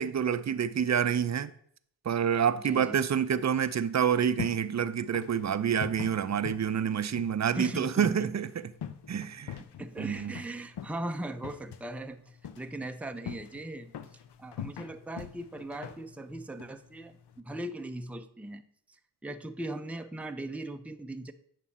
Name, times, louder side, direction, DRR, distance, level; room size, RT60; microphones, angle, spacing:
voice 1, 0.0-1.5 2.0-8.7 9.1-9.5 10.0-10.3, right 8 dB, 40° right, 0.6 m, -28 dB
voice 2, 2.6-3.0 7.5-8.3 9.8-13.9 14.4-18.6 18.9-21.3, right 1 dB, 5° right, 0.7 m, -39 dB
sound 1, 3.9-17.4, left 9 dB, 70° left, 0.7 m, -44 dB
9.2 x 6.0 x 4.2 m
cardioid pair, 50°, 42 cm